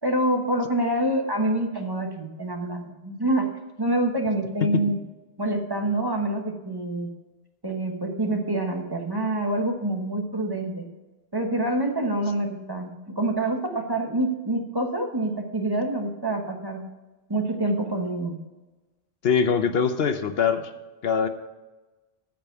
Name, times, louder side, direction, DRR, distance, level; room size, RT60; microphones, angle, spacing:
voice 1, 0.0-3.5 3.8-5.0 5.4-7.1 7.6-10.9 11.3-16.8 17.3-18.4, right 1 dB, 25° right, 3 dB, 1.2 m, -26 dB
voice 2, 19.2-20.7 21.0-21.3, left 6 dB, 75° left, 9 dB, 1.0 m, -23 dB
14.0 x 5.2 x 6.9 m, 1.1 s
omnidirectional pair, 1.0 m